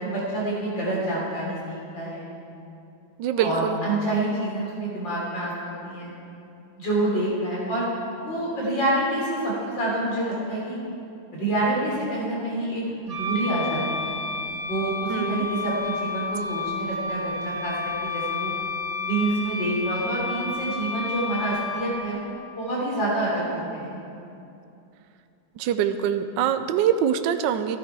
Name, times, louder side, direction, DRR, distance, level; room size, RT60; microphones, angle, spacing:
voice 1, 0.0-2.3 3.4-5.5 5.8-6.1 6.8-7.9 8.2-10.8 11.3-14.2 14.6-18.5 19.0-22.3 22.6-24.0, right 1 dB, 60° left, -5 dB, 4.3 m, -27 dB
voice 2, 3.2-3.8 15.1-15.5 25.6-27.8, right 9 dB, 75° right, 9 dB, 1.2 m, -24 dB
Wind instrument woodwind instrument, 13.1-21.9, left 3 dB, 35° right, 1.7 m, -31 dB
15.0 x 11.0 x 4.7 m, 2.7 s
omnidirectional pair, 2.3 m